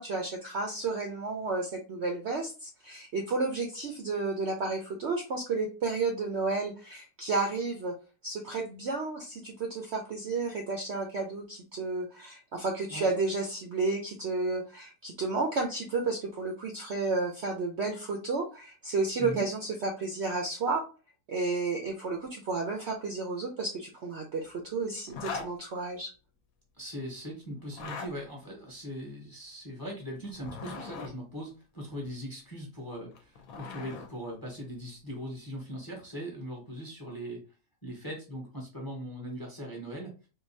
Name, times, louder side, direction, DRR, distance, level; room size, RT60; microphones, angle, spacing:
voice 1, 0.0-7.9 8.2-20.9 21.3-26.1, right 3 dB, 60° right, 2 dB, 0.7 m, -32 dB
Zipper (clothing), 25.1-25.5 27.6-28.1 30.2-31.1 33.0-34.1, left 4 dB, 65° left, 1.1 m, -39 dB
voice 2, 26.8-37.4 37.8-40.3, equal, 15° left, 0 dB, 0.8 m, -40 dB
3.7 x 2.6 x 2.7 m, 0.33 s
omnidirectional pair, 1.7 m